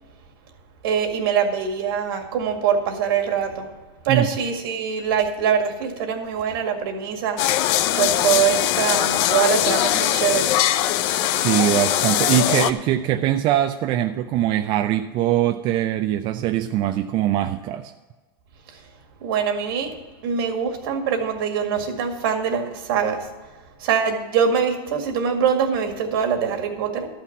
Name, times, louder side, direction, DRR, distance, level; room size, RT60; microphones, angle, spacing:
voice 1, 0.8-3.7 4.0-10.6 18.7-18.9 19.2-20.0 20.2-23.5 23.8-27.1, right 7 dB, 70° right, 5 dB, 2.0 m, -23 dB
sound 1, 7.4-12.7, left 12 dB, 50° left, 0.6 m, -21 dB
voice 2, 11.0-17.9, right 12 dB, 40° right, 7 dB, 0.5 m, -22 dB
12.5 x 5.9 x 7.0 m, 1.3 s
supercardioid pair, 130°, 13 cm